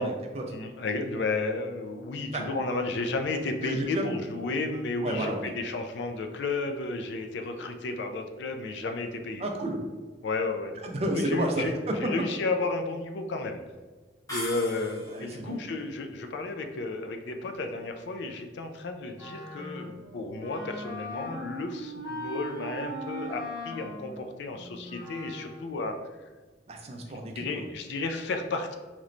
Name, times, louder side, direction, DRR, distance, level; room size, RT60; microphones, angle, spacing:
voice 1, 0.0-0.4 2.3-2.5 3.6-4.2 5.0-5.4 9.4-9.8 10.8-12.1 15.1-15.6 26.7-27.5, right 1 dB, 35° right, 2 dB, 0.4 m, -31 dB
voice 2, 0.5-9.5 10.2-10.7 11.1-11.7 12.0-13.6 14.3-26.0 27.4-28.8, left 3 dB, 75° left, 6 dB, 0.4 m, -32 dB
sound 1, 14.3-15.4, left 1 dB, 20° left, 0.7 m, -38 dB
Wind instrument woodwind instrument, 19.2-25.7, equal, 20° right, 0.8 m, -40 dB
3.1 x 3.0 x 2.5 m, 1.3 s
head